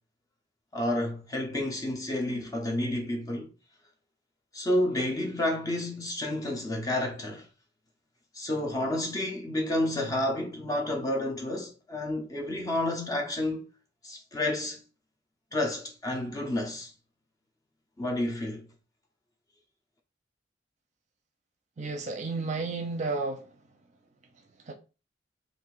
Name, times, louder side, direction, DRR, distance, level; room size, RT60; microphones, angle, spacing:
voice 1, 0.7-3.5 4.5-7.5 8.3-13.7 14.0-14.8 15.5-16.9 18.0-18.7, left 1 dB, 20° left, 0.5 m, -30 dB
voice 2, 21.8-23.5 24.6-24.7, right 3 dB, 40° right, 0.5 m, -32 dB
2.5 x 2.4 x 3.8 m
head